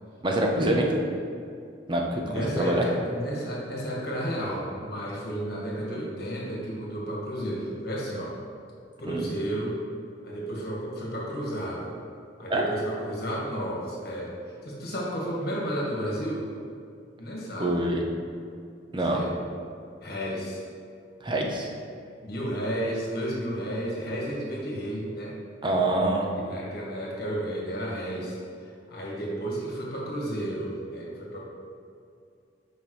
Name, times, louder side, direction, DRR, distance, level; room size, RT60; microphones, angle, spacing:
voice 1, 0.2-1.0 1.9-2.2 2.6-2.8 9.1-9.2 12.5-12.6 17.6-18.0 18.9-19.2 21.2-21.7 25.6-26.3, right 1 dB, 25° right, 0 dB, 0.7 m, -25 dB
voice 2, 2.3-8.4 9.0-9.8 10.2-11.9 12.4-14.4 14.6-16.5 17.2-17.8 19.0-19.3 20.0-20.6 22.2-25.4 26.3-31.4, equal, 55° left, -4 dB, 1.6 m, -32 dB
8.5 x 5.1 x 3.2 m, 2.3 s
head